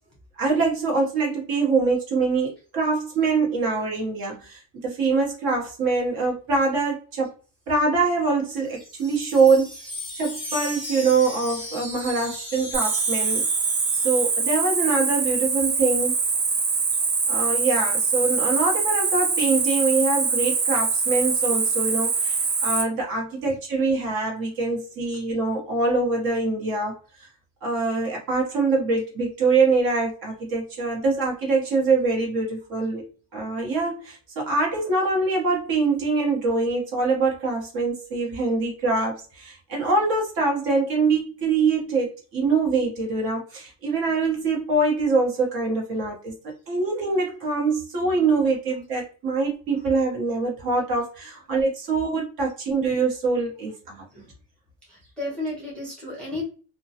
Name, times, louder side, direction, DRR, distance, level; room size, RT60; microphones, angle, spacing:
voice 1, 0.4-7.3 7.7-9.7 10.1-13.4 13.9-16.2 17.3-27.3 27.6-33.0 33.3-46.3 46.7-54.0, right 3 dB, 50° right, 1.0 m, -24 dB
Wind chime, 8.3-14.5, left 1 dB, 15° right, 1.1 m, -37 dB
Cricket, 12.7-22.8, right 4 dB, 90° right, 0.9 m, -23 dB
voice 2, 54.9-56.4, left 2 dB, ahead, 0.5 m, -33 dB
2.2 x 2.2 x 2.7 m
cardioid pair, 175°, 46 cm